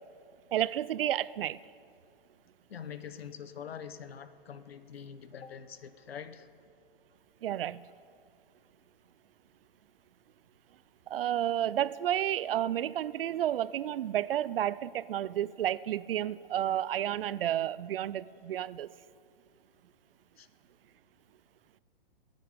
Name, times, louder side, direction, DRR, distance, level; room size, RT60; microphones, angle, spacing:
voice 1, 0.5-1.6 7.4-7.8 11.1-18.9, right 11 dB, 70° right, 19 dB, 0.5 m, -31 dB
voice 2, 2.7-6.5 20.4-20.5, left 7 dB, 85° left, 13 dB, 0.9 m, -44 dB
20.5 x 9.2 x 5.1 m, 2.4 s
hypercardioid pair, 135°, 30 cm